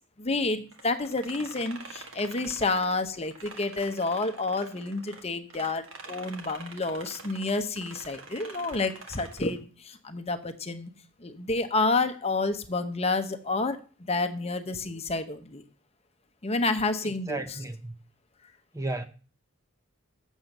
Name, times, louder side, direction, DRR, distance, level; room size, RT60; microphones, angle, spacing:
voice 1, 0.2-10.9 11.2-13.8 14.1-15.6 16.4-17.4, left 3 dB, 30° left, 0.9 m, -29 dB
sound 1, 0.7-5.2 5.5-9.6, right 4 dB, 70° right, 1.7 m, -46 dB
voice 2, 17.0-17.9 18.7-19.1, right 2 dB, 15° right, 0.6 m, -34 dB
7.7 x 7.3 x 6.5 m
head